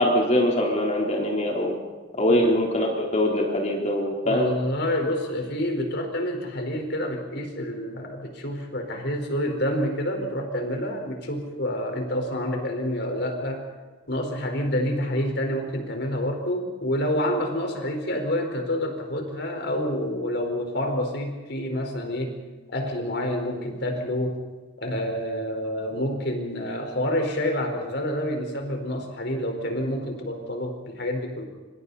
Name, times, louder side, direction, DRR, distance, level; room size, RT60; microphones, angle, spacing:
voice 1, 0.0-1.8 2.1-4.5, left 1 dB, 35° left, -1 dB, 3.9 m, -23 dB
voice 2, 4.2-13.6 14.1-22.4 22.7-24.4 24.8-31.4, left 1 dB, 60° left, 4 dB, 4.8 m, -28 dB
27.0 x 26.0 x 4.3 m, 1.4 s
head